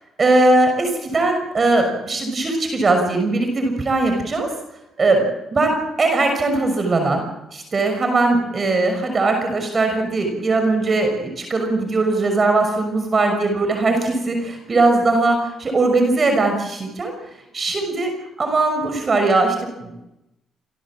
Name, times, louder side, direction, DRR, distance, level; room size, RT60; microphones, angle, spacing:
voice 1, 0.2-4.5 5.0-7.2 7.5-17.1 17.5-18.1 18.4-19.6 19.8-19.9, right 2 dB, 35° right, 5 dB, 6.1 m, -19 dB
27.5 x 18.0 x 7.6 m, 0.91 s
cardioid pair, 90°, 0 cm